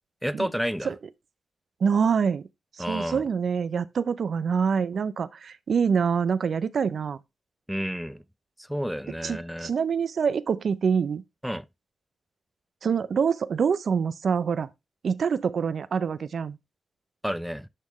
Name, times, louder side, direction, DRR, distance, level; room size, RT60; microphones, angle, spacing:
voice 1, 0.2-0.9 2.8-3.2 7.7-8.2 8.7-9.7 11.4-11.7 17.2-17.7, equal, ahead, 0.5 m, -30 dB
voice 2, 1.8-2.5 2.9-7.2 9.2-11.2 12.8-14.7 15.0-16.6, right 6 dB, 70° right, 0.4 m, -25 dB
10.5 x 3.6 x 3.1 m
cardioid pair, 55°, 0 cm